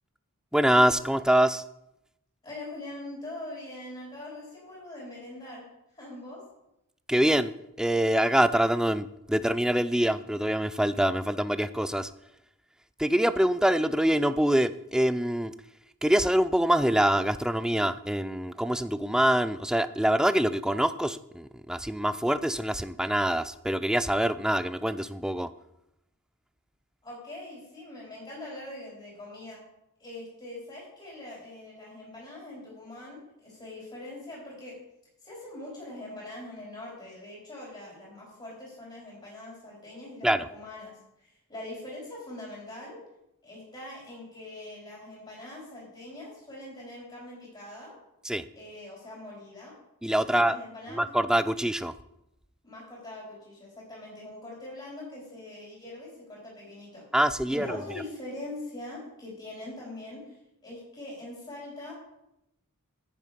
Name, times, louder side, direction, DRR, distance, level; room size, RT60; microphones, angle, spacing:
voice 1, 0.5-1.6 7.1-7.5 7.8-12.1 13.0-15.5 16.0-25.5 40.2-40.5 48.2-48.4 50.0-50.6 50.9-51.9 57.1-57.8, right 1 dB, 5° right, 13 dB, 0.4 m, -25 dB
voice 2, 2.4-5.6 5.9-6.4 27.0-29.6 30.0-34.8 35.2-40.9 41.2-43.0 43.4-47.9 48.5-49.7 50.3-51.1 52.6-57.0 57.4-61.9, left 1 dB, 25° left, -5 dB, 4.2 m, -42 dB
10.5 x 8.3 x 5.1 m, 0.85 s
head